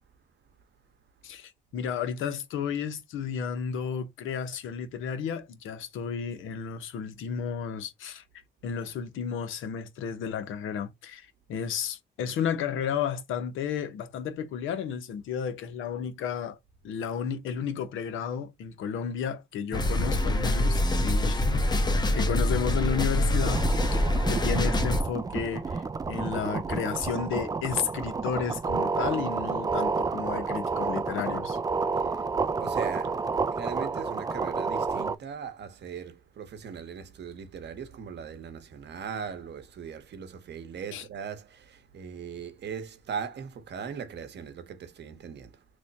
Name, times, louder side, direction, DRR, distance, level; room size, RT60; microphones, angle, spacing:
voice 1, 1.2-8.2 8.6-16.6 16.8-24.0 24.3-31.6 40.9-41.0, left 7 dB, 85° left, 0.8 m, -33 dB
sound 1, 19.7-25.0, left 1 dB, 20° left, 0.7 m, -25 dB
sound 2, 23.4-35.2, right 4 dB, 20° right, 0.3 m, -30 dB
voice 2, 31.9-45.7, right 6 dB, 60° right, 0.9 m, -39 dB
3.2 x 2.1 x 3.9 m
cardioid pair, 90°, 20 cm